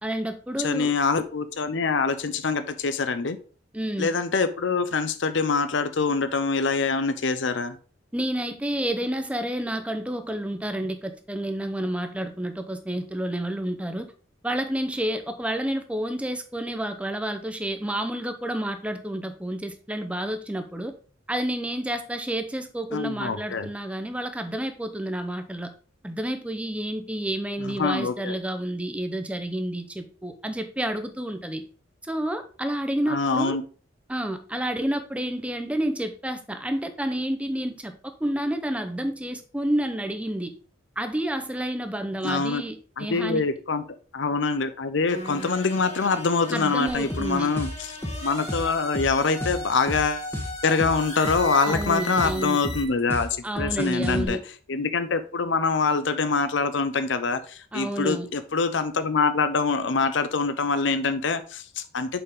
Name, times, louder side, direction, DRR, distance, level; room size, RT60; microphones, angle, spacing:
voice 1, 0.0-0.9 3.7-4.1 8.1-14.1 14.4-20.9 21.3-25.7 26.0-31.6 32.0-33.6 34.1-40.5 41.0-43.4 46.5-47.5 51.6-52.6 53.4-54.4 57.7-58.3, right 1 dB, 5° right, 0.7 m, -29 dB
voice 2, 0.6-3.4 4.0-7.8 22.9-23.7 27.6-28.4 33.1-33.6 42.2-42.6 43.0-43.8 44.1-47.9 48.2-50.3 50.6-53.3 53.6-54.4 54.7-62.2, left 4 dB, 65° left, 0.6 m, -25 dB
sound 1, 45.1-52.8, left 1 dB, 35° left, 1.7 m, -37 dB
sound 2, 46.9-54.3, left 1 dB, 10° left, 1.0 m, -33 dB
7.0 x 5.1 x 3.6 m
head